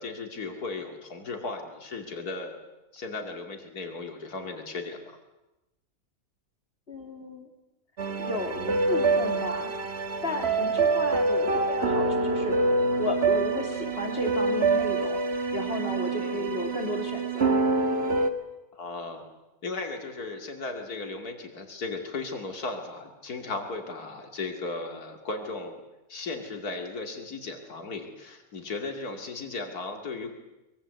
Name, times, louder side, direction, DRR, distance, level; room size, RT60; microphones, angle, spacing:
voice 1, 0.0-2.6 2.9-5.0 16.1-16.4 18.7-19.2 19.6-25.8 26.1-30.3, left 3 dB, 85° left, 4 dB, 2.9 m, -36 dB
voice 2, 6.9-7.5 8.2-9.7 10.2-12.6 13.0-17.6, left 1 dB, 40° left, 4 dB, 3.0 m, -33 dB
sound 1, 8.0-18.3, right 3 dB, 45° right, 1.7 m, -26 dB
24.0 x 22.5 x 8.0 m, 0.97 s
omnidirectional pair, 1.6 m